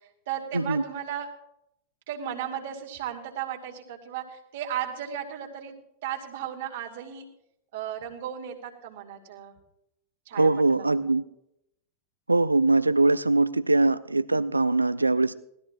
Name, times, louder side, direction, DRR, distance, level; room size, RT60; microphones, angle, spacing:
voice 1, 0.3-1.3 2.1-5.7 6.0-7.2 7.7-9.5 10.3-11.1 15.0-15.3, right 10 dB, 55° right, 2 dB, 2.3 m, -35 dB
voice 2, 10.3-11.2 12.3-15.3, right 2 dB, 85° right, 15 dB, 0.4 m, -22 dB
19.5 x 13.5 x 2.5 m, 0.78 s
figure-of-eight pair, 95°, 0 cm